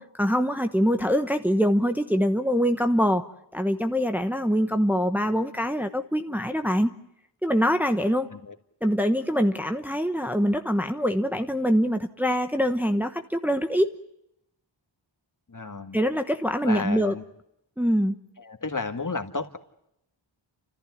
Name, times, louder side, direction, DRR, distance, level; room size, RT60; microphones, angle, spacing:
voice 1, 0.0-3.3 3.5-6.9 7.4-8.3 8.8-14.0 15.9-17.1 17.8-18.1, equal, 5° right, 6 dB, 1.1 m, -24 dB
voice 2, 15.5-16.0 16.6-17.2 18.4-19.6, left 3 dB, 40° left, 6 dB, 1.9 m, -32 dB
29.0 x 14.5 x 9.4 m, 0.80 s
wide cardioid pair, 60°, 47 cm